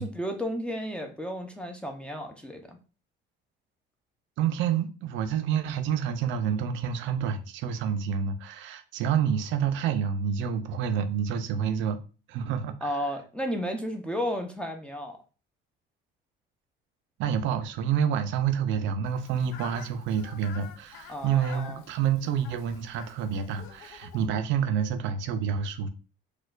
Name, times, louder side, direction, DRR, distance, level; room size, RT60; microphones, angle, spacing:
voice 1, 0.0-2.8 12.8-15.2 21.1-21.8, equal, 5° left, 0.4 m, -33 dB
voice 2, 4.4-12.0 12.3-13.0 17.2-25.9, right 8 dB, 70° right, 0.4 m, -28 dB
Fowl, 19.1-24.3, left 8 dB, 85° left, 0.4 m, -48 dB
4.3 x 2.2 x 2.3 m
cardioid pair, 125°, 20 cm